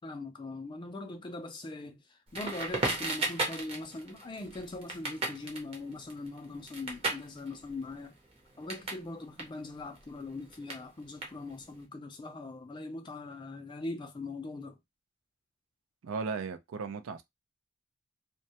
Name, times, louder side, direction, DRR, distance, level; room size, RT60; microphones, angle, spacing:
voice 1, 0.0-8.2 8.6-14.8, left 2 dB, 25° left, 0.3 m, -41 dB
Crackle, 2.3-9.0 9.3-11.8, right 2 dB, 30° right, 0.6 m, -36 dB
voice 2, 16.0-17.2, right 5 dB, 85° right, 0.4 m, -36 dB
2.2 x 2.0 x 2.7 m
head